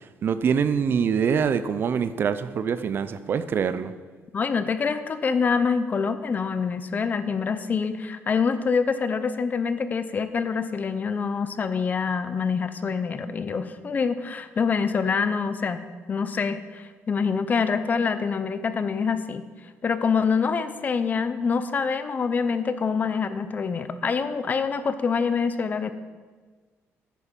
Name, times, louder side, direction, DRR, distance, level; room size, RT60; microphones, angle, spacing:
voice 1, 0.2-3.9, right 7 dB, 45° right, 13 dB, 0.5 m, -24 dB
voice 2, 4.3-19.4 19.8-25.9, left 5 dB, 35° left, 11 dB, 0.6 m, -26 dB
10.5 x 8.5 x 5.3 m, 1.4 s
cardioid pair, 130°, 5 cm